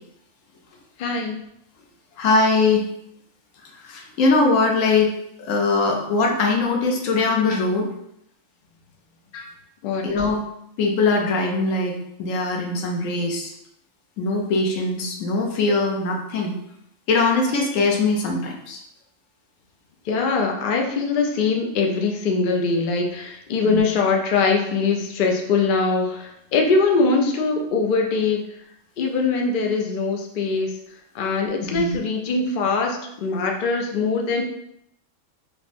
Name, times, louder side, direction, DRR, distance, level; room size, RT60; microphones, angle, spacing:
voice 1, 1.0-1.4 9.8-10.0 20.1-28.4 29.0-30.7 31.1-34.4, left 4 dB, 60° left, 2 dB, 0.5 m, -22 dB
voice 2, 2.2-2.9 3.7-7.9 9.3-9.5 10.0-10.4 10.8-13.5 14.2-16.6 17.1-18.8 23.6-23.8 31.7-32.0, left 3 dB, 90° left, 1 dB, 1.1 m, -21 dB
5.0 x 2.1 x 2.5 m, 0.77 s
omnidirectional pair, 1.3 m